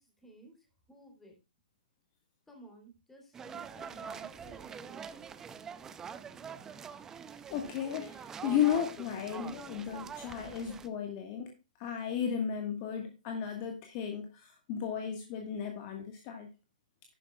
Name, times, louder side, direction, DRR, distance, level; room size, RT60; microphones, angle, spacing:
voice 1, 0.0-1.4 2.5-5.2, right 1 dB, 5° left, 3.2 m, -56 dB
sound 1, 3.3-10.9, right 7 dB, 10° right, 0.5 m, -45 dB
voice 2, 7.5-11.5 11.8-16.5, left 8 dB, 30° left, 1.5 m, -34 dB
11.5 x 10.0 x 2.3 m
hypercardioid pair, 155°, 5 cm